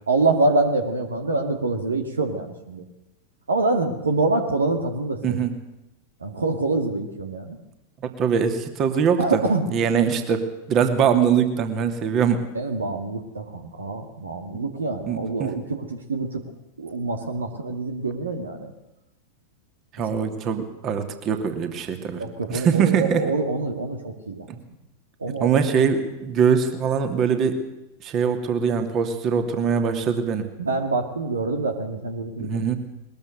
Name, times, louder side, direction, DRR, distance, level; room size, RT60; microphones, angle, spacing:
voice 1, 0.1-2.8 3.5-5.4 6.2-7.6 9.2-9.7 12.5-16.4 16.8-18.7 22.2-24.4 25.2-25.5 30.6-32.6, right 3 dB, 75° right, 6 dB, 2.2 m, -25 dB
voice 2, 5.2-5.5 8.0-9.4 9.7-12.4 15.1-15.5 19.9-22.2 22.5-23.2 24.5-24.6 25.4-27.6 28.0-30.4 32.4-32.8, right 7 dB, 35° right, 7 dB, 2.7 m, -22 dB
21.5 x 20.5 x 6.6 m, 0.91 s
figure-of-eight pair, 90°, 0 cm